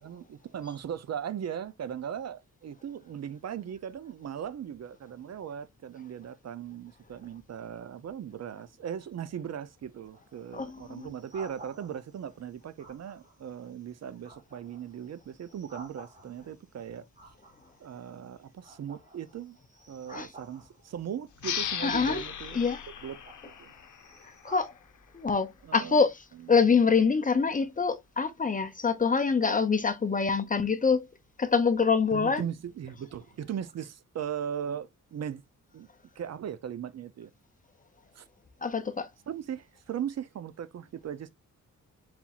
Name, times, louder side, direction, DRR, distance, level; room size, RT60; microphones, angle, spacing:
voice 1, 0.0-17.0 17.8-19.6 19.9-22.6 23.0-23.2 23.6-23.7 25.6-26.0 32.1-35.4 35.7-35.9 36.2-37.3 38.1-38.2 39.3-41.3, right 9 dB, 55° right, 0.5 m, -38 dB
sound 1, 10.0-12.2 12.8-13.5 13.9-16.6 17.1-18.2 18.6-21.0 21.5-22.2 22.8-24.7, right 2 dB, 25° right, 1.6 m, -52 dB
voice 2, 10.5-11.1 20.1-20.3 21.8-22.2 22.5-22.8 24.4-24.7 25.1-26.2 26.5-31.1 31.4-32.4 38.6-39.1, left 5 dB, 25° left, 0.5 m, -25 dB
sound 2, 21.4-24.7, left 8 dB, 65° left, 0.7 m, -37 dB
4.3 x 4.2 x 2.4 m
wide cardioid pair, 165°, 33 cm